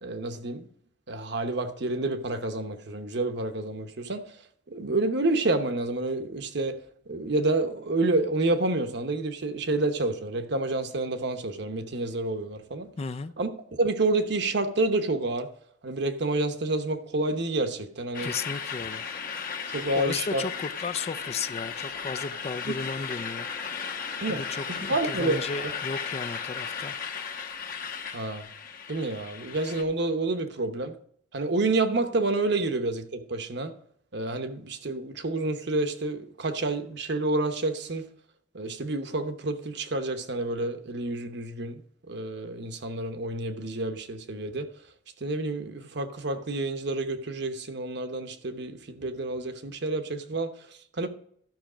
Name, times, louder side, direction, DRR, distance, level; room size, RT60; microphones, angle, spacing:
voice 1, 0.0-0.7 1.1-4.3 4.7-6.8 7.1-12.9 13.4-15.5 15.8-18.3 19.7-20.4 22.6-22.7 24.2-24.4 24.7-25.7 28.1-28.5 28.9-30.9 31.3-33.7 34.1-38.1 38.5-41.8 42.1-44.7 45.2-51.1, right 2 dB, 65° right, 1.0 m, -29 dB
voice 2, 13.0-13.3 18.2-19.0 19.9-24.0 24.3-27.0, left 4 dB, 35° left, 0.4 m, -35 dB
sound 1, 18.1-29.8, left 6 dB, 50° left, 1.2 m, -35 dB
12.0 x 5.8 x 5.1 m
head